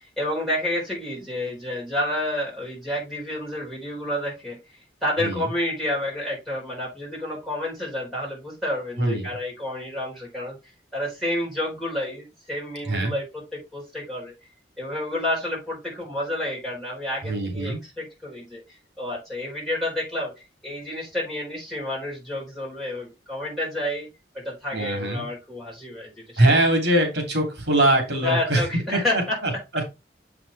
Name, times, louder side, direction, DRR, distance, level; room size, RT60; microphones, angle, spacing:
voice 1, 0.2-4.6 5.0-10.6 10.9-14.3 14.8-18.6 19.0-20.4 20.6-24.1 24.3-26.4 28.2-29.4, left 1 dB, ahead, 4.2 m, -29 dB
voice 2, 9.0-9.3 12.8-13.1 17.2-17.8 24.7-25.2 26.4-28.6 28.9-29.8, right 1 dB, 65° right, 3.0 m, -22 dB
7.2 x 6.0 x 3.4 m
head